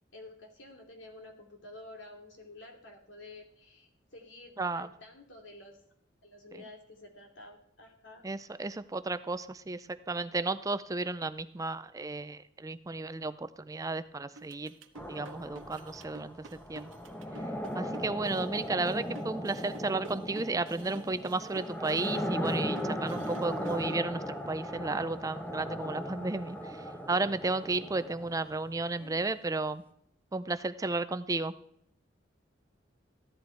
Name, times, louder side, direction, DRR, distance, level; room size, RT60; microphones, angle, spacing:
voice 1, 0.1-5.8 6.2-8.2 29.0-29.2, left 2 dB, 70° left, 2 dB, 2.7 m, -50 dB
voice 2, 4.6-4.9 6.5-6.6 8.2-14.7 15.1-16.9 17.7-29.8 30.3-31.5, right 3 dB, 20° right, 12 dB, 0.4 m, -33 dB
sound 1, 14.4-23.9, right 2 dB, 90° right, 1.2 m, -49 dB
sound 2, 14.9-28.8, equal, 10° left, 0.9 m, -37 dB
14.5 x 11.0 x 4.6 m, 0.69 s
head